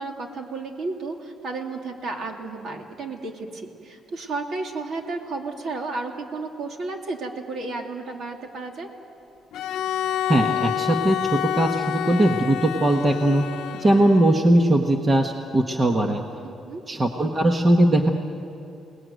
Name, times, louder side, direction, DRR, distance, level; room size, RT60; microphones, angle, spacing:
voice 1, 0.0-8.9 16.4-16.8, right 3 dB, 55° right, 2 dB, 2.8 m, -32 dB
Bowed string instrument, 9.5-14.5, left 11 dB, 85° left, 0.6 m, -28 dB
voice 2, 10.3-13.5 13.8-16.2 16.9-18.1, right 1 dB, 20° right, 3 dB, 1.2 m, -20 dB
29.0 x 19.5 x 9.3 m, 2.7 s
cardioid pair, 165°, 0 cm